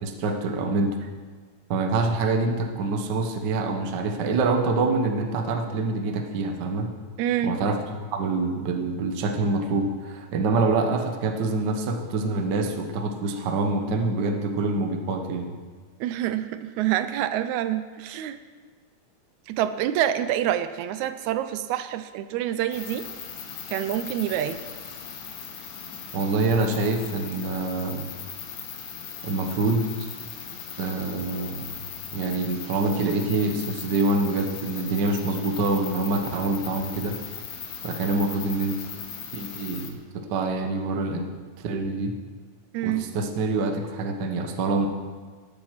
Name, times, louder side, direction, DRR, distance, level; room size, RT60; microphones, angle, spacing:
voice 1, 0.0-1.1 1.7-6.9 7.4-7.8 8.1-15.6 26.1-28.1 29.2-30.1 30.8-31.8 32.1-37.2 37.8-38.8 39.3-40.0 40.3-41.3 41.6-42.1 42.8-44.9, right 3 dB, 60° right, 5 dB, 1.1 m, -26 dB
voice 2, 7.2-7.5 16.0-18.4 19.5-23.1 23.7-24.6 42.7-43.1, right 11 dB, 80° right, 11 dB, 1.9 m, -27 dB
sound 1, 22.7-39.9, left 7 dB, 70° left, 2.3 m, -38 dB
13.5 x 7.6 x 5.8 m, 1.5 s
omnidirectional pair, 3.3 m